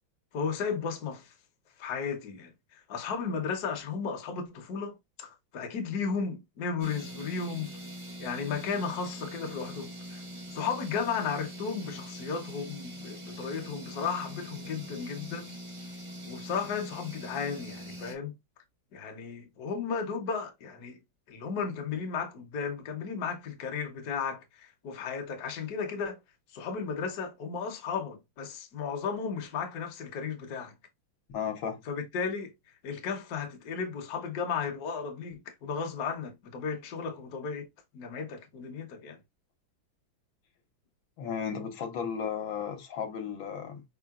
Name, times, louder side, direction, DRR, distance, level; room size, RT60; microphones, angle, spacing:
voice 1, 0.3-1.3 1.8-7.7 8.2-10.2 10.5-15.5 16.2-18.3 18.9-21.0 21.3-26.2 26.5-30.7 31.9-32.5 32.8-37.7 37.9-39.2, left 5 dB, 55° left, 1.3 m, -34 dB
sound 1, 6.8-18.1, equal, 45° right, 0.4 m, -43 dB
voice 2, 31.3-31.8 41.2-43.8, left 7 dB, 75° left, 1.7 m, -34 dB
4.9 x 3.8 x 2.3 m
omnidirectional pair, 2.2 m